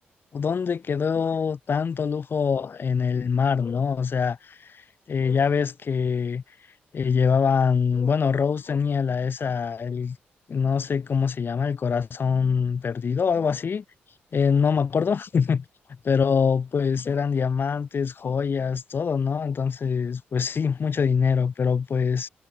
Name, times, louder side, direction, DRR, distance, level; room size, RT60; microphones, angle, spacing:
voice 1, 0.3-4.8 5.1-6.4 6.9-10.2 10.5-13.8 14.3-15.6 16.0-22.3, left 6 dB, 55° left, 5.7 m, -24 dB
supercardioid pair, 55°, 4 cm